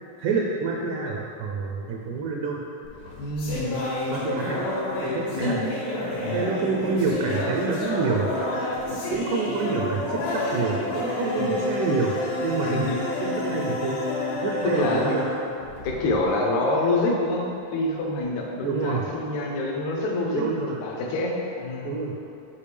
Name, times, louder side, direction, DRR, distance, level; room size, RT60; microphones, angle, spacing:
voice 1, 0.2-2.6 4.1-4.7 5.0-5.6 6.3-8.6 9.1-12.9 13.2-14.0 14.4-15.3 18.6-19.1 20.2-20.8 21.8-22.2, right 4 dB, 80° right, -2 dB, 1.9 m, -27 dB
sound 1, 2.8-16.3, left 1 dB, 90° left, 3.1 m, -29 dB
voice 2, 3.2-3.8 5.3-5.7 6.2-6.4 11.4-11.5 12.6-13.0 14.6-15.1 15.8-17.5 17.7-20.5 20.8-21.9, left 2 dB, 70° left, -1 dB, 1.9 m, -26 dB
8.6 x 4.9 x 3.3 m, 2.8 s
omnidirectional pair, 3.9 m